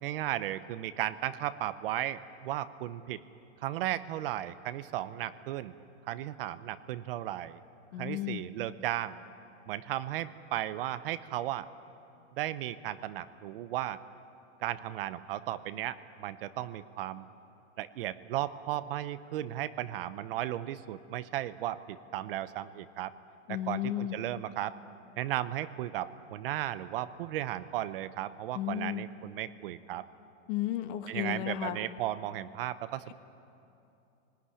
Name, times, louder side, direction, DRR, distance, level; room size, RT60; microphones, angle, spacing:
voice 1, 0.0-3.2 3.6-5.7 6.1-7.6 8.0-9.2 9.7-11.7 12.3-14.0 14.6-17.3 17.8-23.1 23.5-24.7 25.2-30.0 31.1-33.1, right 13 dB, 45° right, 14 dB, 0.9 m, -35 dB
voice 2, 7.9-8.4 23.5-24.2 28.5-29.0 30.5-31.8, left 13 dB, 40° left, 9 dB, 1.6 m, -33 dB
26.5 x 19.5 x 9.9 m, 2.8 s
supercardioid pair, 155°, 38 cm